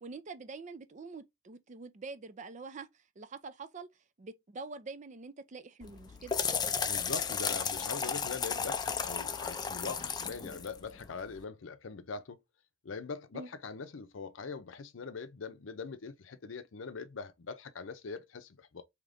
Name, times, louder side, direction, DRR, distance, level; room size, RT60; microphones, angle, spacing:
voice 1, 0.0-3.9 4.2-6.4 13.3-13.5, right 4 dB, 35° right, 0.4 m, -45 dB
sound 1, 5.8-11.4, left 6 dB, 20° left, 0.4 m, -34 dB
voice 2, 6.8-12.4 12.8-18.8, left 4 dB, 75° left, 0.6 m, -42 dB
3.8 x 2.9 x 3.4 m
head